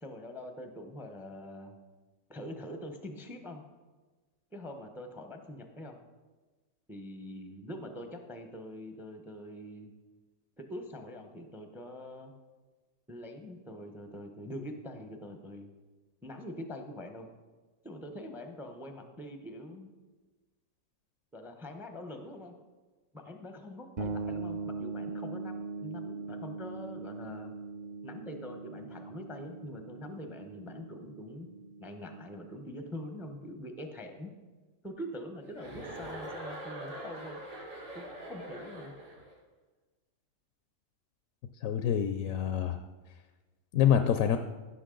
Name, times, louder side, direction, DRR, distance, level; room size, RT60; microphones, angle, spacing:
voice 1, 0.0-1.8 2.3-3.6 4.5-6.0 6.9-9.9 10.7-12.3 13.1-15.7 16.2-17.3 17.8-19.9 21.3-22.5 23.1-27.6 28.0-31.5 31.8-34.3 34.8-37.4 37.9-38.9, left 1 dB, ahead, 5 dB, 0.6 m, -44 dB
sound 1, 24.0-33.6, right 4 dB, 45° right, 0.6 m, -41 dB
Chuckle chortle, 35.5-39.3, right 1 dB, 60° right, 3.1 m, -43 dB
voice 2, 41.6-42.8 43.7-44.4, left 9 dB, 70° left, 8 dB, 0.9 m, -26 dB
15.5 x 6.2 x 3.8 m, 1.3 s
omnidirectional pair, 1.5 m